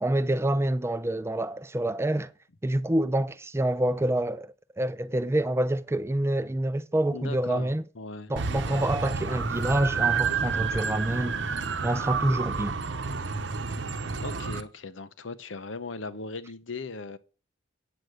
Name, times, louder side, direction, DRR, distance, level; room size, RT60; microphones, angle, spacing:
voice 1, 0.0-2.3 2.6-7.8 8.3-11.4 11.8-12.8, right 1 dB, 15° right, 0.4 m, -27 dB
voice 2, 7.1-8.3 8.6-8.9 14.2-17.2, left 3 dB, 85° left, 0.9 m, -38 dB
sound 1, 8.4-14.6, right 5 dB, 70° right, 0.8 m, -30 dB
9.0 x 7.9 x 6.4 m
head